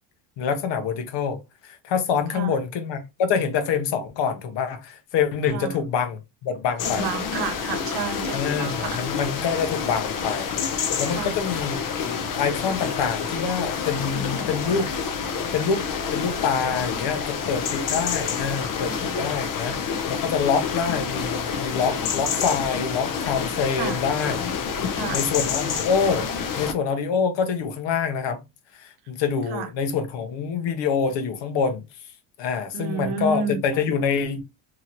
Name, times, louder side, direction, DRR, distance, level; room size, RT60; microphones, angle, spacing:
voice 1, 0.4-7.1 8.3-14.9 15.5-15.9 16.1-24.5 25.1-26.3 26.6-28.5 28.7-31.9 32.4-34.4, left 6 dB, 60° left, 0.9 m, -26 dB
sound 1, 6.8-26.7, left 6 dB, 45° left, 0.7 m, -28 dB
voice 2, 6.9-9.0 11.1-11.4 18.8-19.1 23.8-24.0 24.9-25.2 29.5-29.7 32.7-33.6, right 5 dB, 55° right, 0.9 m, -30 dB
2.9 x 2.8 x 2.5 m
supercardioid pair, 90°, 48 cm